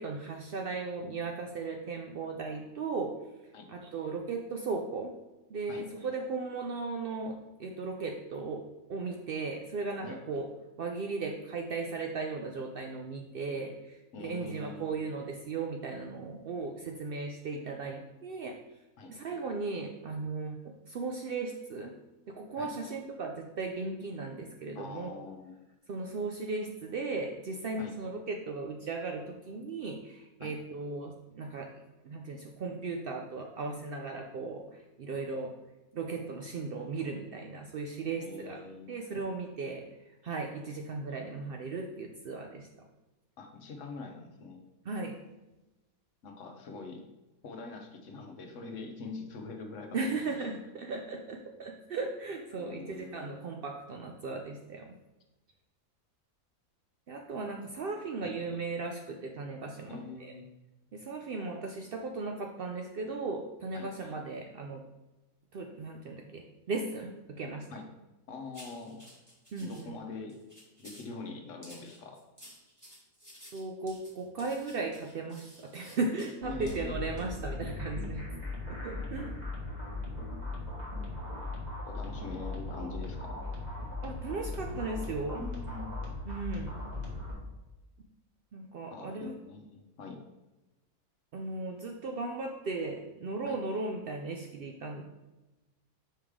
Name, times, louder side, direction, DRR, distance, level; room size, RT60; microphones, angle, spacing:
voice 1, 0.0-3.1 3.7-5.1 5.5-8.6 8.9-10.5 10.8-18.6 19.0-21.9 22.3-25.2 25.9-31.7 32.0-35.5 35.9-38.6 38.9-39.8 40.2-42.7 44.9-45.2 49.9-55.0 57.1-60.3 60.9-64.8 65.5-67.7 69.5-69.9 73.5-78.2 78.7-79.3 84.0-85.4 86.3-86.7 88.5-89.3 91.3-95.0, right 3 dB, 90° right, 2 dB, 0.5 m, -37 dB
voice 2, 14.1-14.9 19.0-19.1 22.6-22.7 24.7-25.5 27.8-27.9 30.4-30.5 38.2-39.0 43.4-44.6 46.2-47.0 47.4-50.4 52.6-53.4 57.9-58.3 59.9-60.4 63.7-63.9 67.7-67.9 68.3-69.0 69.6-70.4 70.8-72.2 76.4-76.9 81.9-83.4 85.3-85.8 88.9-90.2 93.5-93.6, left 4 dB, 60° left, 4 dB, 1.1 m, -44 dB
sound 1, 68.5-69.8 70.3-71.1 71.6-76.3 76.7-76.8 77.2-77.3, equal, 15° right, 1.3 m, -53 dB
sound 2, 76.4-87.3, left 2 dB, 30° right, 1.3 m, -38 dB
5.6 x 5.0 x 3.5 m, 1.1 s
omnidirectional pair, 1.6 m